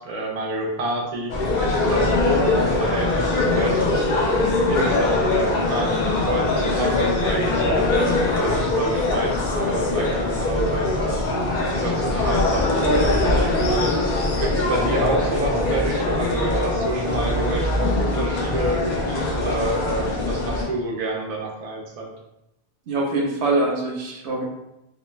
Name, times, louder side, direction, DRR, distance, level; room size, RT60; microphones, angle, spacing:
voice 1, 0.0-4.1 4.7-7.8 8.4-11.2 11.8-14.0 14.4-22.1, right 2 dB, 50° right, 0 dB, 0.4 m, -28 dB
sound 1, 1.3-20.6, left 2 dB, 60° left, 0.6 m, -22 dB
voice 2, 22.9-24.4, right 2 dB, 85° right, 0 dB, 0.9 m, -23 dB
2.2 x 2.1 x 3.1 m, 0.88 s
omnidirectional pair, 1.1 m